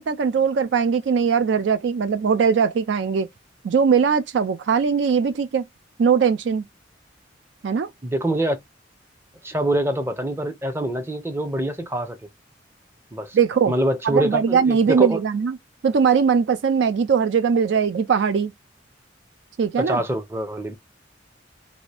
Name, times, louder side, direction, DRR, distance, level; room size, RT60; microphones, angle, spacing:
voice 1, 0.0-3.3 3.6-5.7 6.0-6.6 7.6-7.9 13.3-13.7 14.0-15.6 15.8-18.5 19.6-20.0, right 6 dB, 70° right, 0.4 m, -20 dB
voice 2, 8.0-8.6 9.4-12.2 13.1-13.4 13.7-15.2 19.8-20.8, right 1 dB, 15° right, 0.6 m, -25 dB
2.7 x 2.5 x 3.2 m
head